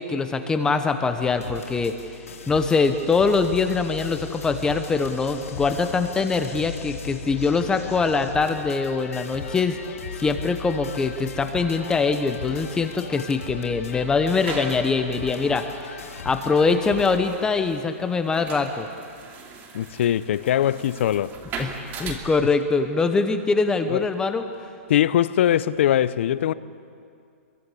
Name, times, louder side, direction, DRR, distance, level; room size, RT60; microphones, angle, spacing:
voice 1, 0.0-2.0 2.5-9.8 10.2-15.9 16.2-18.9 21.6-24.5, left 4 dB, 10° left, 1.0 m, -23 dB
sound 1, 1.2-17.2, left 6 dB, 90° left, 4.0 m, -38 dB
sound 2, 14.0-22.1, right 4 dB, 25° right, 3.0 m, -40 dB
voice 2, 19.7-21.4 23.9-24.0 24.9-26.5, left 11 dB, 55° left, 0.8 m, -21 dB
28.0 x 23.0 x 8.5 m
hypercardioid pair, 155°, 8 cm